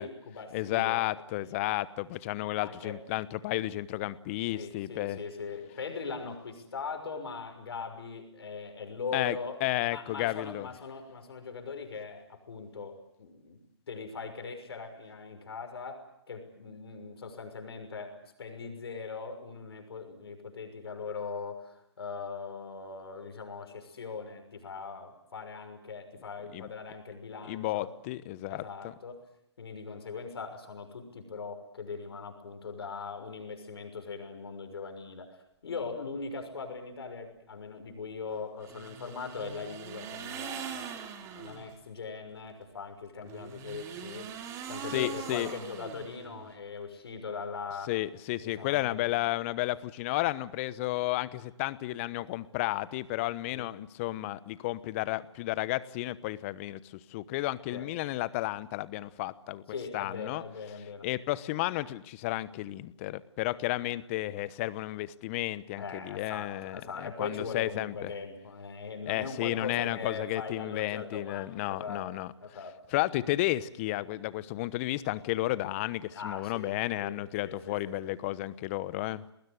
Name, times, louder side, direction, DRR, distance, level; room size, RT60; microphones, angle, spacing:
voice 1, 0.0-1.0 1.4-1.5 2.6-3.0 4.5-9.6 9.9-13.6 13.9-27.9 28.5-29.2 29.6-35.3 35.6-44.3 44.7-47.9 48.4-49.1 53.4-53.7 57.7-57.9 59.7-61.1 65.8-72.1 72.4-72.8 76.1-76.7 77.0-77.2 77.4-78.1, left 5 dB, 65° left, 6 dB, 6.2 m, -40 dB
voice 2, 0.5-5.2 9.1-9.4 9.6-10.7 26.5-26.7 27.5-28.9 44.9-45.5 47.9-59.6 59.9-60.4 61.0-68.1 69.1-72.3 72.9-79.2, left 17 dB, 30° left, 18 dB, 1.1 m, -32 dB
sound 1, 38.6-41.7 43.2-46.5, right 8 dB, 20° right, 2.7 m, -42 dB
29.0 x 20.5 x 8.3 m, 0.77 s
figure-of-eight pair, 140°, 14 cm